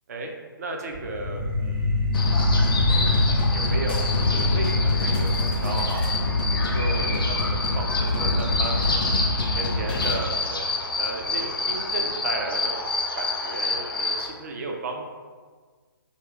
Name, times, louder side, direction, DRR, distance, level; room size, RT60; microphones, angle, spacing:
voice 1, 0.6-2.1 3.5-6.1 6.6-9.0 9.5-10.7 11.0-12.8 13.1-15.0, right 3 dB, 45° right, 2 dB, 0.4 m, -34 dB
sound 1, 0.9-11.9, left 2 dB, 80° right, 0.9 m, -27 dB
sound 2, 2.1-14.3, left 3 dB, 75° left, 0.5 m, -29 dB
sound 3, 2.1-10.1, left 2 dB, 25° left, 0.4 m, -26 dB
2.9 x 2.7 x 2.4 m, 1.5 s
figure-of-eight pair, 140°, 12 cm